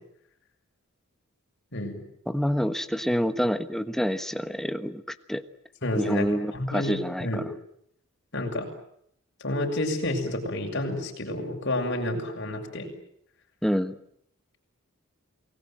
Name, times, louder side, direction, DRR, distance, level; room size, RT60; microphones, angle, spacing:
voice 1, 2.3-5.4 6.0-7.4 13.6-14.0, equal, ahead, 10 dB, 1.3 m, -27 dB
voice 2, 5.8-6.3 6.5-7.5 8.3-8.7 9.4-12.9, left 1 dB, 55° left, 2 dB, 7.3 m, -29 dB
29.0 x 20.5 x 9.1 m, 0.73 s
head